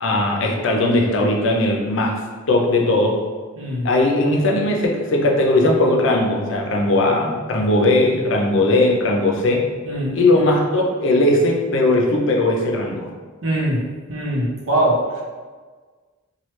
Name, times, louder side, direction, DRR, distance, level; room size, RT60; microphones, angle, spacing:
voice 1, 0.0-2.2 2.5-3.2 3.8-9.7 10.1-13.1, left 2 dB, 65° left, 0 dB, 0.5 m, -18 dB
voice 2, 3.6-3.9 9.8-10.2 13.4-13.8 14.1-15.0, right 1 dB, 75° right, -4 dB, 0.8 m, -21 dB
3.1 x 2.3 x 3.1 m, 1.5 s
head